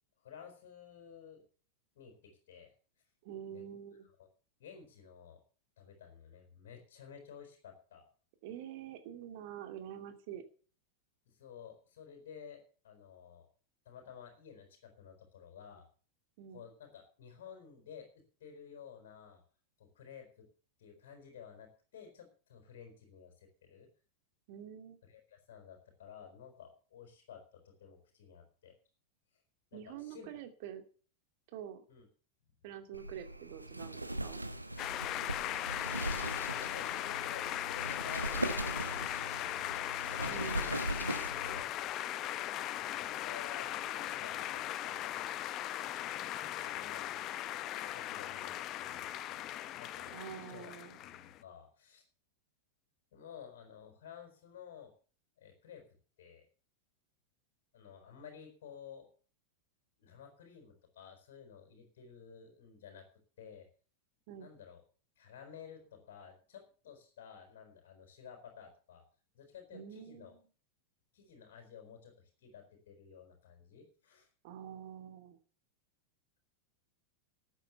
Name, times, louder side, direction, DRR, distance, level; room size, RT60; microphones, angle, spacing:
voice 1, 0.2-1.5 1.9-2.7 3.5-3.6 4.6-5.4 5.8-8.0 11.3-13.5 13.8-15.9 16.5-19.4 19.8-20.5 20.8-23.9 25.0-28.7 29.3-29.4 29.7-30.3 31.9-32.1 36.4-39.8 40.1-41.8 42.9-45.4 46.6-47.1 47.9-52.0 53.1-54.9 55.4-55.9 56.2-56.5 57.7-59.1 60.0-63.1 63.4-63.7 64.4-64.8 65.2-69.0 69.3-70.3 71.1-74.3, left 7 dB, 55° left, 3 dB, 4.6 m, -53 dB
voice 2, 3.2-4.1 8.4-10.4 16.4-16.7 24.5-25.0 29.7-30.8 31.5-31.8 32.6-34.4 40.3-40.8 50.1-51.0 64.3-64.5 69.7-70.3 74.4-75.4, right 9 dB, 50° right, 7 dB, 2.4 m, -46 dB
Wind, 32.9-41.6, right 1 dB, 85° right, 1.2 m, -40 dB
sound 1, 34.8-51.4, left 13 dB, 35° left, 0.8 m, -38 dB
13.5 x 9.2 x 6.9 m, 0.41 s
figure-of-eight pair, 90°, 0 cm